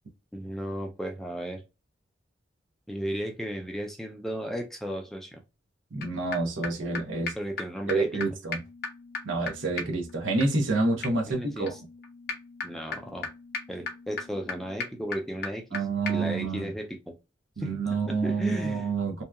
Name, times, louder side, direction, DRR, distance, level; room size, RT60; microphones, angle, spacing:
voice 1, 0.3-1.6 2.9-5.4 7.4-8.2 11.3-11.8 12.6-13.3 13.7-17.2 17.6-18.9, equal, ahead, 0.3 m, -35 dB
voice 2, 5.9-7.3 7.9-8.6 9.2-11.7 15.7-16.7 17.6-19.2, right 3 dB, 80° right, 0.7 m, -28 dB
sound 1, 6.0-6.1 6.3-6.4 6.6-6.7 6.9-7.0 7.3-7.4 7.6-7.7 7.9-8.0 8.2-8.3 8.5-15.8 16.1-16.2, left 4 dB, 50° left, 0.6 m, -38 dB
2.7 x 2.3 x 2.3 m
head